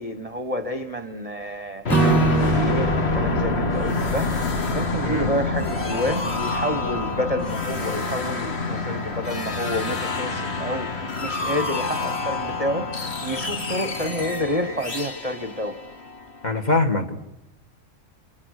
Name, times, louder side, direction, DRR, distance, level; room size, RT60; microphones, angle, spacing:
voice 1, 0.0-4.4 4.7-15.8, equal, 25° right, 1.1 m, -29 dB
sound 1, 1.8-16.5, left 3 dB, 50° left, 2.0 m, -27 dB
Acoustic guitar / Strum, 1.9-5.2, right 4 dB, ahead, 1.9 m, -25 dB
voice 2, 16.4-17.2, left 3 dB, 30° left, 2.0 m, -23 dB
29.5 x 28.0 x 6.6 m
omnidirectional pair, 1.5 m